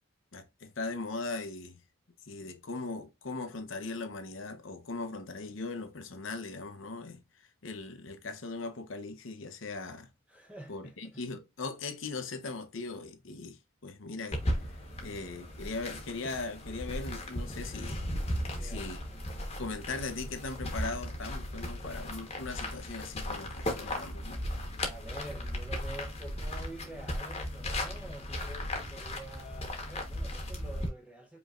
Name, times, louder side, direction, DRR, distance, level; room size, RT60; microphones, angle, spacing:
voice 1, 0.3-1.8 2.3-10.1 10.7-14.4 15.0-18.0 18.6-19.0 19.6-24.4, left 3 dB, 70° left, 0.8 m, -39 dB
voice 2, 10.3-11.2 15.0-15.3 18.4-19.0 24.9-31.4, right 1 dB, 5° right, 0.7 m, -47 dB
sound 1, 14.3-30.9, left 1 dB, 30° left, 1.1 m, -36 dB
5.1 x 3.1 x 2.4 m
head